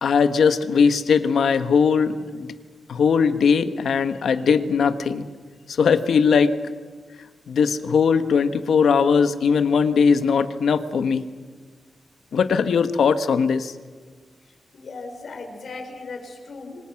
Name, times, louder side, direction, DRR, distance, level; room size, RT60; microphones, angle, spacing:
voice 1, 0.0-2.5 2.9-5.2 5.7-6.6 7.5-11.2 12.3-13.7, left 6 dB, 75° left, 10 dB, 1.4 m, -19 dB
voice 2, 14.7-16.8, left 3 dB, 55° left, 3 dB, 4.7 m, -37 dB
27.0 x 25.0 x 5.9 m, 1.5 s
wide cardioid pair, 160°, 0 cm